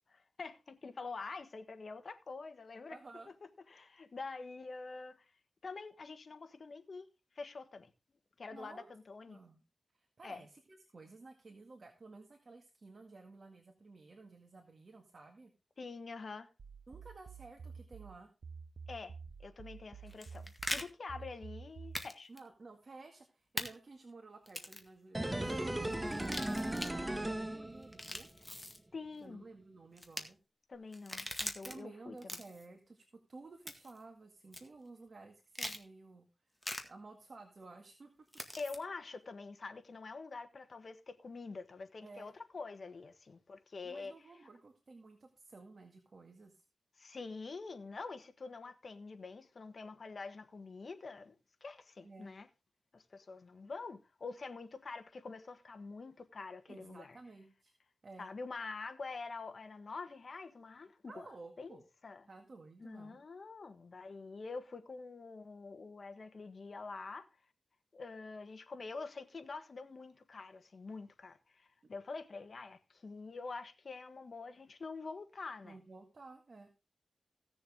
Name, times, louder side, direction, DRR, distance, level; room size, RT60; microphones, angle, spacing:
voice 1, 0.4-3.0 3.7-5.2 5.6-7.1 7.3-7.9 8.4-9.4 10.2-10.4 15.8-16.5 18.9-19.1 19.4-22.3 28.9-29.4 30.7-32.3 38.6-44.3 47.0-51.4 51.6-52.5 52.9-57.2 58.2-61.3 61.6-62.3 62.8-67.3 67.9-75.8, left 4 dB, 60° left, 1.3 m, -46 dB
voice 2, 2.9-3.3 8.5-8.9 9.3-9.6 9.9-15.5 16.9-18.3 22.3-28.3 29.2-30.4 31.6-36.3 36.8-38.3 42.0-42.3 43.8-46.6 52.0-52.3 56.7-57.7 58.0-58.3 61.1-61.8 62.3-63.2 75.6-76.7, right 3 dB, 55° right, 2.0 m, -54 dB
sound 1, 16.6-22.1, right 5 dB, 75° right, 0.7 m, -50 dB
sound 2, 20.1-20.8 21.9-22.1 22.4-22.5 23.6-23.7 24.5-24.9 26.1-26.9 27.8-28.8 30.0-30.2 30.9-31.7 32.2-32.7 33.7-34.0 34.5-34.6 35.5-35.8 36.6-36.8 38.3-38.8, left 1 dB, 10° left, 1.8 m, -41 dB
sound 3, 25.1-28.3 28.6-28.7, right 1 dB, 15° right, 1.4 m, -37 dB
16.5 x 7.0 x 3.6 m
wide cardioid pair, 75°, 0 cm